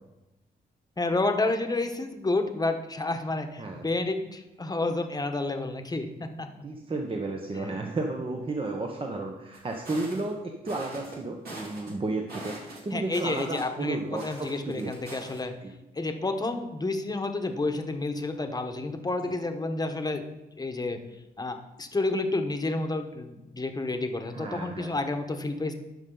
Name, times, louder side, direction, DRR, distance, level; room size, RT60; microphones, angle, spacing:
voice 1, 1.0-6.5 7.5-7.7 12.9-15.5 15.9-20.2 20.6-21.0 21.4-25.7, left 2 dB, 25° left, 6 dB, 1.1 m, -30 dB
voice 2, 6.6-14.9 15.6-15.7 24.3-25.0, right 2 dB, 35° right, 1 dB, 1.1 m, -33 dB
sound 1, 9.5-10.3 10.7-11.2 11.5-11.9 12.3-13.8 14.2-15.4, right 1 dB, 70° right, 2.7 m, -43 dB
12.0 x 5.4 x 3.9 m, 0.99 s
cardioid pair, 60°, 16 cm